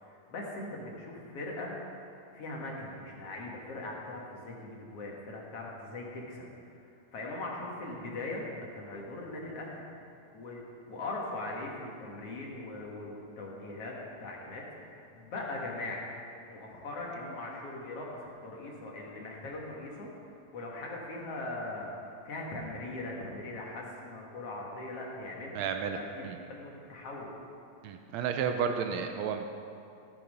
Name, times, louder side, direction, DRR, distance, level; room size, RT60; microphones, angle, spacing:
voice 1, 0.0-2.0 2.3-6.5 7.1-8.5 8.7-9.8 10.3-10.6 10.9-13.9 14.2-16.0 16.5-20.1 20.5-25.7 25.9-27.3, left 2 dB, 55° left, -2 dB, 2.5 m, -40 dB
voice 2, 25.5-26.0 26.2-26.4 27.8-29.5, right 7 dB, 80° right, 6 dB, 1.8 m, -32 dB
13.5 x 8.6 x 5.3 m, 2.6 s
omnidirectional pair, 3.3 m